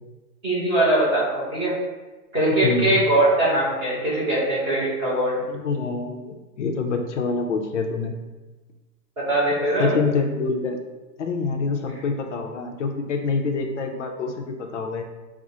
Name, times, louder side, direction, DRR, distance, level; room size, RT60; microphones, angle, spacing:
voice 1, 0.4-1.7 2.3-5.4 9.2-9.9, right 1 dB, 10° right, -8 dB, 0.6 m, -21 dB
voice 2, 2.6-3.0 5.5-8.1 9.8-10.8 11.2-15.0, left 4 dB, 50° left, 3 dB, 0.5 m, -26 dB
6.0 x 2.0 x 2.7 m, 1.2 s
hypercardioid pair, 150°, 49 cm